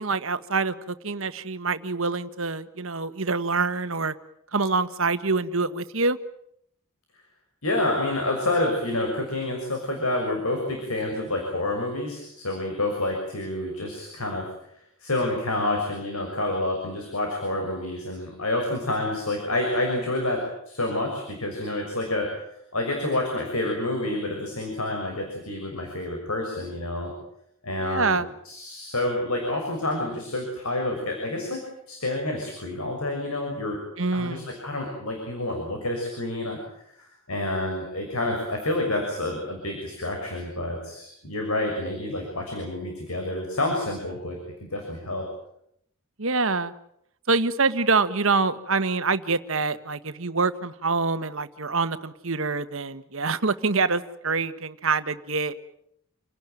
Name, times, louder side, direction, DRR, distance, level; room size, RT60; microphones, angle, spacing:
voice 1, 0.0-4.1 4.5-6.2 27.8-28.3 34.0-34.5 46.2-46.7 47.3-55.5, right 4 dB, 65° right, 11 dB, 1.4 m, -25 dB
voice 2, 7.6-14.5 15.0-22.3 22.7-27.1 27.6-28.1 28.4-33.8 34.1-36.6 37.0-45.2, left 1 dB, 80° left, 2 dB, 6.5 m, -28 dB
28.5 x 18.0 x 9.2 m, 0.73 s
head